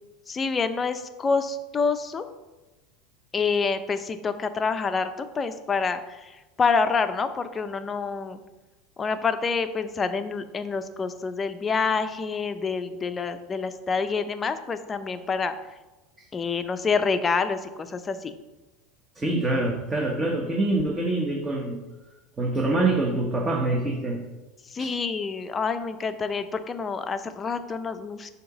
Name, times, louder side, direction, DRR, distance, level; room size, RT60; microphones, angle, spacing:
voice 1, 0.3-2.3 3.3-6.0 6.6-8.4 9.0-15.5 16.3-18.3 24.7-28.3, left 5 dB, 25° left, 9 dB, 0.6 m, -27 dB
voice 2, 19.1-21.8 22.4-24.2 24.8-25.0, right 2 dB, 20° right, 0 dB, 1.0 m, -25 dB
7.7 x 2.9 x 6.0 m, 1.1 s
supercardioid pair, 100°, 0 cm